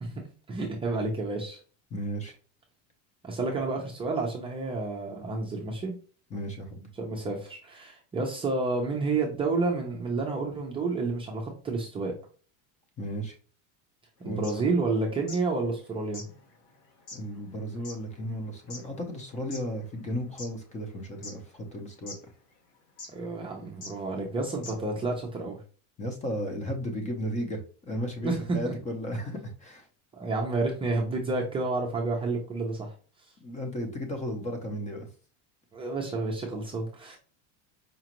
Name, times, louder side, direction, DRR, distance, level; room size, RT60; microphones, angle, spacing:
voice 1, 0.0-1.6 3.2-5.9 6.9-12.1 14.2-16.2 23.1-25.6 28.2-28.7 30.1-32.9 35.7-37.2, right 3 dB, 15° right, -1 dB, 0.6 m, -30 dB
voice 2, 1.9-2.3 6.3-6.9 13.0-13.3 14.2-14.6 17.1-22.1 26.0-29.9 33.4-35.1, equal, 20° left, 4 dB, 0.7 m, -34 dB
sound 1, 14.3-15.5 15.8-15.9 16.1-19.7 20.1-20.9 21.2-21.7 22.1-22.2 23.0-23.2 23.8-23.9 24.3-24.4 24.6-25.0, left 3 dB, 85° left, 1.5 m, -44 dB
5.0 x 2.4 x 2.9 m, 0.38 s
supercardioid pair, 150°, 36 cm